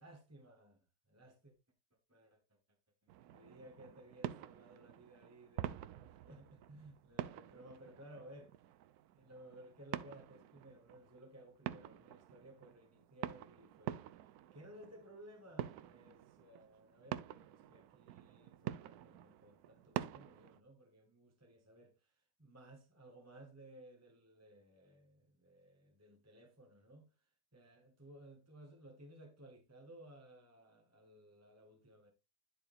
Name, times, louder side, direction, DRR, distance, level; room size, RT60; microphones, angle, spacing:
voice 1, 0.0-0.8 1.1-1.5 2.1-2.6 3.3-8.5 9.1-32.1, right 1 dB, 10° right, 1.1 m, -58 dB
sound 1, 3.1-20.6, right 12 dB, 70° right, 1.0 m, -47 dB
11.5 x 4.6 x 3.4 m
omnidirectional pair, 1.8 m